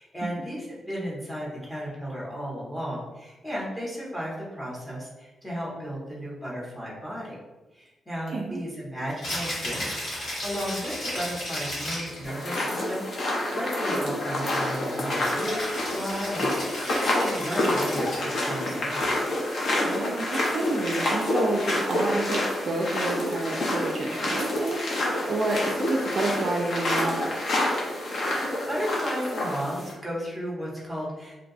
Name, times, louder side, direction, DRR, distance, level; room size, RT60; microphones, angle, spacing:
voice 1, 0.0-7.3 7.7-19.0 28.4-31.4, equal, 5° left, -5 dB, 0.9 m, -34 dB
voice 2, 8.3-8.6 19.8-27.3, right 2 dB, 45° right, 0 dB, 0.3 m, -29 dB
Rattle (instrument), 9.1-12.3 15.2-18.4, left 1 dB, 75° left, 1.5 m, -34 dB
sound 1, 12.2-29.9, left 1 dB, 50° left, 0.7 m, -28 dB
2.6 x 2.3 x 3.9 m, 1.1 s
wide cardioid pair, 175°, 0 cm